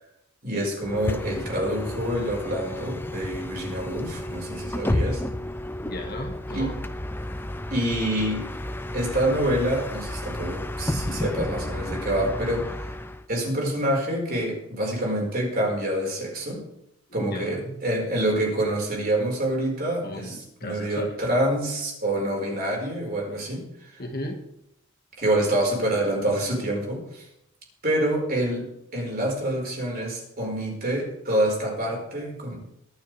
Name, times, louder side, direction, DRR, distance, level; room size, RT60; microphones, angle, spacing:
voice 1, 0.4-5.2 6.5-6.7 7.7-8.5 8.9-12.9 13.3-16.6 17.1-24.0 25.2-27.3 27.8-28.7 28.9-32.6, right 1 dB, 40° right, -2 dB, 5.0 m, -27 dB
Bus, 0.8-13.2, left 1 dB, 10° left, 0.5 m, -31 dB
voice 2, 5.8-6.8 17.2-17.8 20.0-21.2 24.0-24.4, left 1 dB, 45° left, 3 dB, 1.8 m, -35 dB
24.0 x 9.1 x 3.5 m, 0.80 s
head